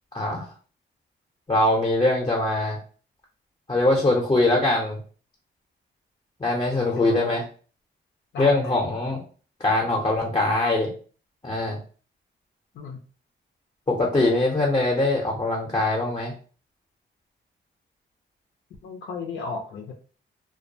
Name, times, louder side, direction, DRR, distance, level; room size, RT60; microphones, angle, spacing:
voice 1, 0.1-0.5 1.5-2.8 3.7-5.0 6.4-7.4 8.4-9.2 9.6-10.9 11.4-11.8 13.9-16.3, left 2 dB, 25° left, -2 dB, 0.6 m, -22 dB
voice 2, 6.8-7.4 8.3-9.2 12.7-13.0 18.8-19.9, left 4 dB, 70° left, 2 dB, 0.5 m, -35 dB
2.2 x 2.2 x 2.6 m, 0.39 s
cardioid pair, 85°, 20 cm